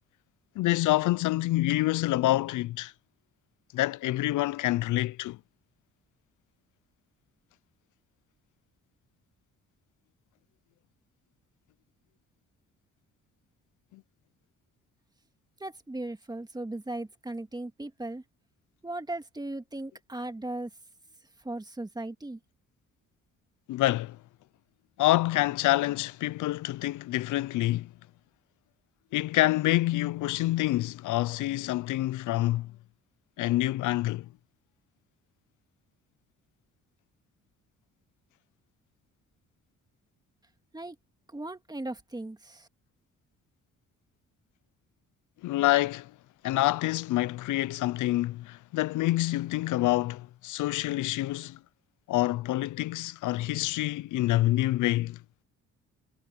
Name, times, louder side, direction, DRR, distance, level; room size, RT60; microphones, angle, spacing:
voice 1, 0.6-2.9 3.7-5.4 13.9-14.0 23.7-24.2 25.0-27.9 29.1-32.7 33.4-34.3 45.4-46.1 46.4-51.6 52.1-55.2, left 16 dB, 80° left, 0.6 m, -27 dB
voice 2, 15.6-18.2 18.8-20.7 21.4-22.4 40.7-41.0 41.3-42.7, right 2 dB, 15° right, 2.2 m, -37 dB
cardioid pair, 90°, 30 cm